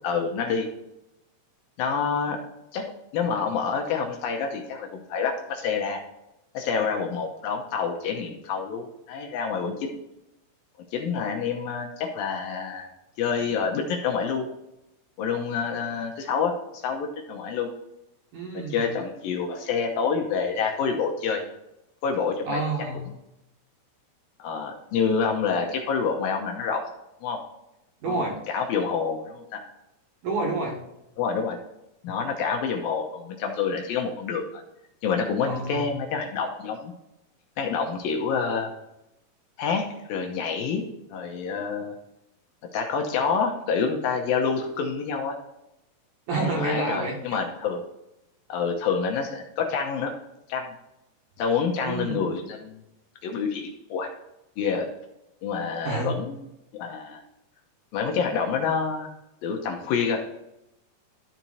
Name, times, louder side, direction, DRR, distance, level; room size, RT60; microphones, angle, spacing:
voice 1, 0.0-0.7 1.8-2.4 2.7-2.8 3.1-6.0 6.5-9.9 10.9-12.9 13.2-14.5 15.2-17.7 18.7-21.4 22.0-22.6 24.4-26.8 27.2-27.4 28.1-29.6 31.2-31.6 32.0-34.6 35.0-36.9 37.6-38.7 39.6-40.9 41.1-41.9 42.7-45.4 46.3-47.8 48.5-50.1 50.5-50.7 51.4-52.8 53.2-54.1 54.6-54.9 55.4-56.5 56.7-57.2 57.9-59.1 59.4-60.2, left 5 dB, 75° left, 2 dB, 2.4 m, -27 dB
voice 2, 18.3-18.9 22.5-23.1 28.0-28.4 30.2-30.8 35.5-36.0 46.3-47.2 51.8-52.3 55.8-56.2, right 3 dB, 60° right, 0 dB, 2.8 m, -29 dB
13.0 x 4.4 x 4.1 m, 0.88 s
omnidirectional pair, 4.6 m